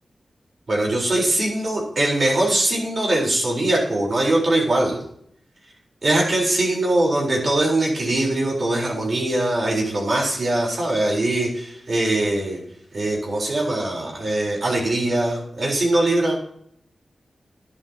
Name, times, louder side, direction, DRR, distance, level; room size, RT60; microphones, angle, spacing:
voice 1, 0.7-5.0 6.0-12.6 12.9-16.4, right 1 dB, 55° right, -2 dB, 4.1 m, -21 dB
12.0 x 10.5 x 2.9 m, 0.66 s
wide cardioid pair, 80°, 0 cm